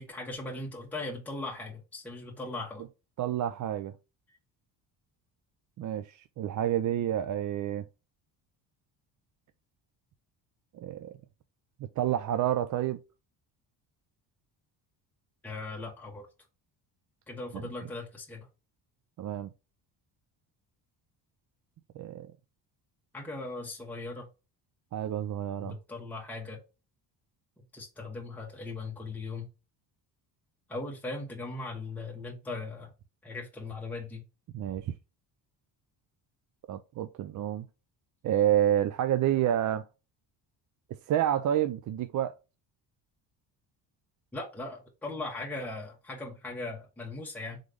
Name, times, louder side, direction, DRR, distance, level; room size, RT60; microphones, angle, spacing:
voice 1, 0.0-2.9 15.4-16.3 17.3-18.5 23.1-24.3 25.6-26.6 27.7-29.5 30.7-32.9 33.2-34.2 44.3-47.6, left 2 dB, 5° left, 1.2 m, -39 dB
voice 2, 3.2-3.9 5.8-7.8 10.7-11.1 12.0-13.0 19.2-19.5 22.0-22.3 24.9-25.8 34.5-34.9 36.7-37.7 38.2-39.8 41.1-42.3, right 11 dB, 45° right, 0.4 m, -29 dB
3.9 x 3.1 x 3.4 m
cardioid pair, 105°, 43 cm